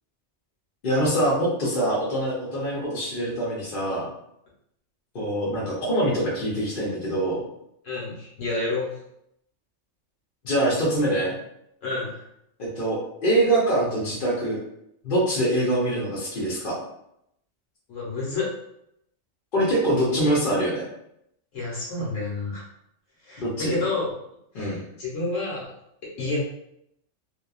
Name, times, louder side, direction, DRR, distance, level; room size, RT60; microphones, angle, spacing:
voice 1, 0.8-4.1 5.1-7.4 10.4-11.4 12.6-14.6 15.0-16.8 19.5-20.9 23.4-23.8 24.5-24.8, right 1 dB, 50° left, -6 dB, 0.8 m, -24 dB
voice 2, 7.8-9.0 11.8-12.2 17.9-18.5 21.5-22.6 23.2-24.2 24.6-25.7 26.0-26.4, left 3 dB, 85° left, -5 dB, 1.4 m, -29 dB
2.8 x 2.3 x 2.3 m, 0.77 s
omnidirectional pair, 1.3 m